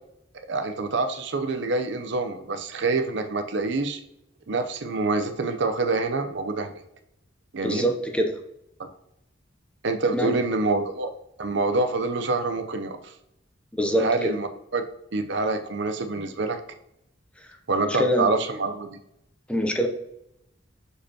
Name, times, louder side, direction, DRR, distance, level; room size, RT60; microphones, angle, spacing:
voice 1, 0.5-4.0 4.5-6.8 7.5-7.9 8.8-8.9 9.8-11.1 11.4-13.1 14.0-14.8 15.1-16.6 17.7-19.0, right 3 dB, 65° right, 7 dB, 0.6 m, -26 dB
voice 2, 7.6-8.4 10.1-10.4 13.7-14.3 17.4-18.3 19.5-19.9, equal, 5° left, 3 dB, 0.6 m, -25 dB
6.5 x 5.1 x 2.8 m, 0.81 s
head